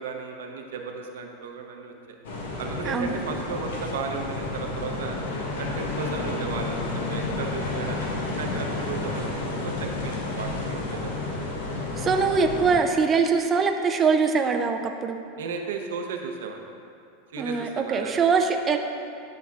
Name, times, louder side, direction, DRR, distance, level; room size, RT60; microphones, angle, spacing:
voice 1, 0.0-1.9 2.6-5.2 5.6-8.1 8.4-11.4 15.4-16.6 17.3-18.3, right 5 dB, 90° right, 3 dB, 0.7 m, -35 dB
sound 1, 2.2-12.8, left 2 dB, 85° left, 1.0 m, -31 dB
voice 2, 2.9-3.2 12.0-15.2 17.4-18.8, right 5 dB, 25° right, 4 dB, 0.4 m, -23 dB
10.5 x 5.7 x 2.4 m, 2.5 s
supercardioid pair, 130°, 0 cm